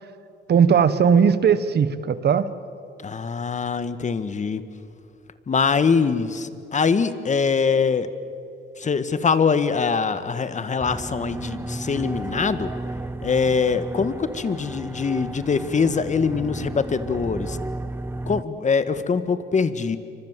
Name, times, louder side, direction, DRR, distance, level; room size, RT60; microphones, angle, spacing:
voice 1, 0.5-2.5, right 7 dB, 55° right, 13 dB, 1.5 m, -18 dB
voice 2, 3.0-4.6 5.5-8.1 8.8-12.7 13.2-17.6 18.3-20.0, left 5 dB, 40° left, 12 dB, 1.7 m, -23 dB
sound 1, 10.8-18.4, right 2 dB, 10° right, 0.7 m, -33 dB
28.5 x 24.5 x 7.6 m, 2.6 s
cardioid pair, 90°, 20 cm